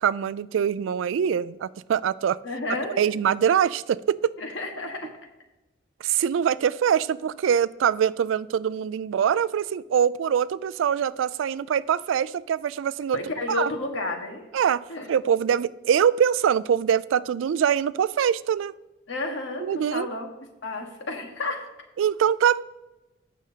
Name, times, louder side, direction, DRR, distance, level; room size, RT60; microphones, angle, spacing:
voice 1, 0.0-2.4 3.0-4.4 6.0-13.2 13.5-13.7 14.5-18.7 19.6-20.1 22.0-22.6, right 8 dB, 90° right, 0.3 m, -23 dB
voice 2, 2.4-3.0 4.4-5.1 13.1-14.4 14.9-15.1 19.1-20.3 20.6-21.7, left 2 dB, 85° left, 1.5 m, -31 dB
16.5 x 6.3 x 2.8 m
head